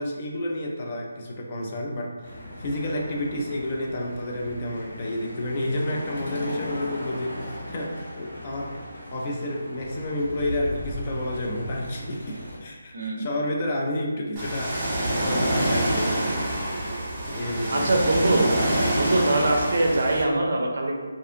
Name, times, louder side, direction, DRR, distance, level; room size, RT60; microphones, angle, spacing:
voice 1, 0.0-2.1 2.6-8.8 9.1-14.8 15.1-16.3 17.3-17.9, left 1 dB, 35° left, -1 dB, 0.4 m, -30 dB
sound 1, 2.2-12.6, equal, 65° left, 1.3 m, -38 dB
voice 2, 12.9-13.3 17.7-18.5 19.0-21.1, right 2 dB, 60° right, 1 dB, 0.5 m, -23 dB
Ocean, 14.4-20.2, right 1 dB, 20° right, 0.8 m, -26 dB
2.5 x 2.4 x 2.5 m, 1.3 s
figure-of-eight pair, 155°, 0 cm